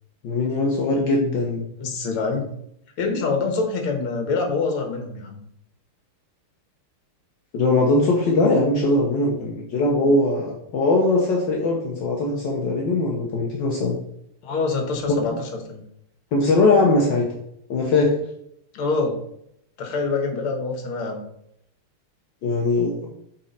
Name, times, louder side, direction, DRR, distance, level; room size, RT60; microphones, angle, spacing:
voice 1, 0.2-1.6 7.5-14.0 15.1-15.2 16.3-17.3 17.7-18.1 22.4-23.1, left 2 dB, 65° left, -1 dB, 1.6 m, -20 dB
voice 2, 1.8-2.5 3.0-5.4 14.4-15.8 18.7-19.2 19.8-21.2, left 4 dB, 80° left, 4 dB, 2.1 m, -25 dB
8.2 x 4.3 x 4.1 m, 0.75 s
omnidirectional pair, 2.3 m